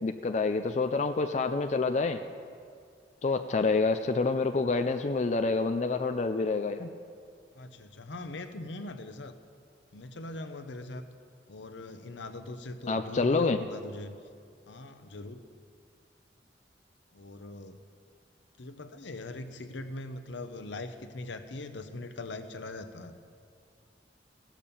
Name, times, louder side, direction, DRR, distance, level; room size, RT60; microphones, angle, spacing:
voice 1, 0.0-2.2 3.2-6.9 12.9-13.6, left 3 dB, 40° left, 7 dB, 0.4 m, -27 dB
voice 2, 7.5-9.3 9.9-11.1 11.5-14.2 14.7-15.4 17.1-17.8 18.6-23.2, left 2 dB, 80° left, 8 dB, 0.8 m, -41 dB
17.0 x 7.3 x 7.0 m, 2.2 s
head